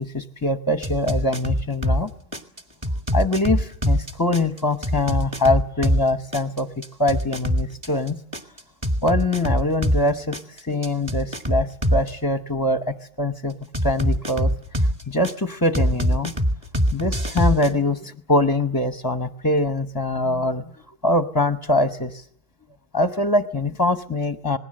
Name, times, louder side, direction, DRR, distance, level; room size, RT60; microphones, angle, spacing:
voice 1, 0.0-2.1 3.1-6.7 7.0-8.2 9.0-10.4 10.6-13.6 13.8-14.5 15.1-16.3 16.9-20.6 21.0-22.2 22.9-24.6, left 2 dB, 20° left, 8 dB, 0.9 m, -23 dB
sound 1, 0.8-2.0 2.3-6.0 6.3-10.0 10.3-12.1 13.7-15.3 15.7-17.7, equal, 20° right, 1.9 m, -22 dB
27.5 x 20.0 x 7.7 m, 0.69 s
omnidirectional pair, 1.3 m